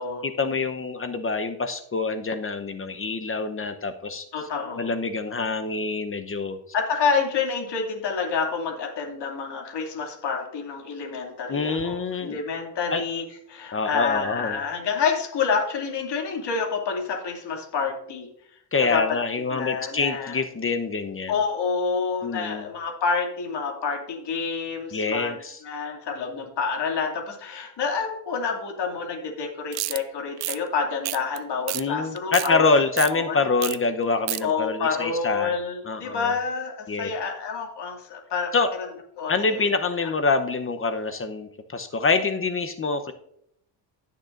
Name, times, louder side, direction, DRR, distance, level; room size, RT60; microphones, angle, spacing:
voice 1, 0.2-4.2 4.8-6.6 11.5-12.4 12.9-13.0 13.7-14.6 18.7-21.4 22.2-22.7 24.9-25.6 31.7-35.5 35.8-36.3 36.9-37.1 38.5-38.7 39.3-43.1, left 4 dB, 25° left, 9 dB, 0.8 m, -26 dB
voice 2, 4.3-4.9 6.7-13.2 13.5-18.3 18.8-19.0 19.5-20.4 21.3-25.4 25.6-32.6 33.1-33.4 34.4-38.5 39.2-39.6 40.0-40.1, left 5 dB, 55° left, 0 dB, 2.6 m, -28 dB
sound 1, 29.7-30.0 30.4-30.6 31.0-31.4 31.7-31.8 32.2-32.5 33.0-33.1 33.6-33.8 34.0-34.4, right 16 dB, 50° right, 0.5 m, -29 dB
16.0 x 6.7 x 2.6 m, 0.71 s
supercardioid pair, 80°, 50 cm